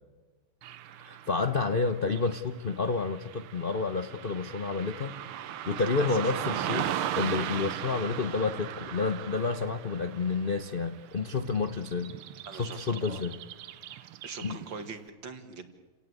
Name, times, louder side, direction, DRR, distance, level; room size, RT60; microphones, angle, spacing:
Car passing by / Traffic noise roadway noise, 0.6-14.9, right 11 dB, 85° right, 1.8 m, -38 dB
voice 1, 1.0-12.1 12.5-13.4 14.4-14.6, left 4 dB, 40° left, 8 dB, 0.8 m, -30 dB
voice 2, 5.8-6.3 12.4-13.2 13.9-15.7, right 5 dB, 60° right, 8 dB, 2.7 m, -43 dB
30.0 x 18.0 x 8.3 m, 1.4 s
omnidirectional pair, 2.3 m